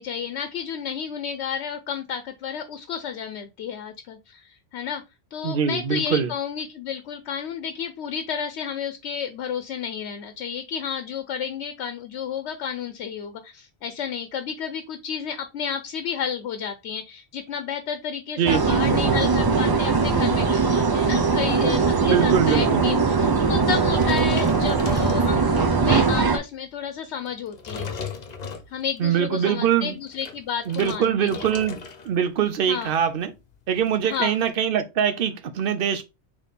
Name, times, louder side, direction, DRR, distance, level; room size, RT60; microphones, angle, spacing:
voice 1, 0.0-5.0 5.3-27.9 28.7-31.5 32.7-32.9 34.0-34.4, left 7 dB, 85° left, 0.9 m, -31 dB
voice 2, 5.4-6.3 18.4-19.2 22.1-22.9 29.0-29.9 30.7-31.8 32.0-33.3 33.7-36.0, right 8 dB, 65° right, 0.8 m, -23 dB
sound 1, 18.5-26.4, right 4 dB, 35° right, 0.4 m, -20 dB
sound 2, 24.0-25.7 26.2-26.5 27.3-29.1 29.9-32.2 32.4-32.7 33.0-33.1 33.4-34.5, left 5 dB, 45° left, 0.7 m, -37 dB
4.1 x 3.1 x 3.3 m
omnidirectional pair, 1.1 m